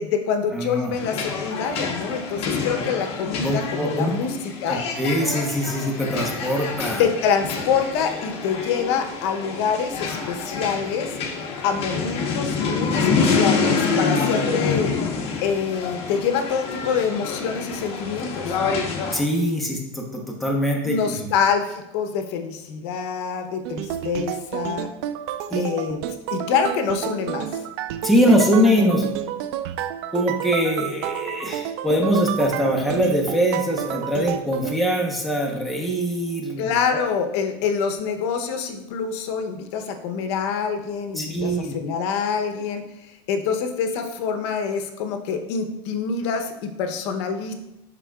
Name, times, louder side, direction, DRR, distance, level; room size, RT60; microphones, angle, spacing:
voice 1, 0.0-4.3 4.6-4.8 7.0-14.9 15.4-18.8 20.8-24.9 25.5-26.0 26.3-27.5 36.6-47.5, left 6 dB, 70° left, 6 dB, 0.8 m, -26 dB
voice 2, 0.5-0.9 3.4-4.2 4.7-7.0 19.1-21.3 25.5-25.7 28.0-29.0 30.1-36.8 41.2-41.8, equal, ahead, -1 dB, 0.9 m, -22 dB
sound 1, 0.9-19.2, left 4 dB, 40° left, 1.1 m, -27 dB
sound 2, 23.6-34.7, right 11 dB, 70° right, 0.4 m, -30 dB
11.0 x 3.7 x 2.3 m, 0.93 s
supercardioid pair, 145°, 15 cm